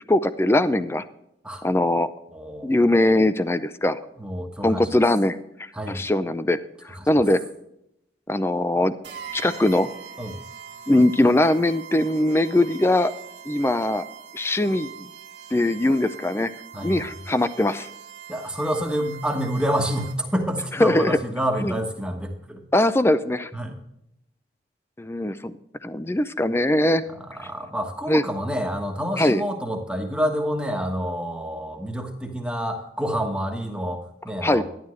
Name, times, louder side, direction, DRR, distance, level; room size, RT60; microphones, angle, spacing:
voice 1, 0.1-1.0 1.6-2.1 2.6-4.0 4.6-5.4 5.9-6.6 6.8-7.4 8.3-8.9 9.3-9.9 10.9-13.1 13.5-14.0 14.3-15.1 15.5-16.5 16.8-17.9 20.8-21.2 21.6-21.7 22.7-23.5 25.0-25.5 25.8-27.0 27.4-27.5 28.1-28.2 29.2-29.4 34.4-34.6, left 1 dB, 15° left, 13 dB, 0.4 m, -21 dB
voice 2, 2.3-2.7 4.2-5.0 5.7-6.0 6.9-7.2 10.2-10.3 16.7-17.1 18.3-22.6 23.5-23.8 27.1-34.6, equal, 5° right, 2 dB, 1.2 m, -28 dB
sound 1, 9.0-20.4, right 7 dB, 80° right, 1.4 m, -42 dB
12.0 x 11.0 x 3.2 m, 0.80 s
head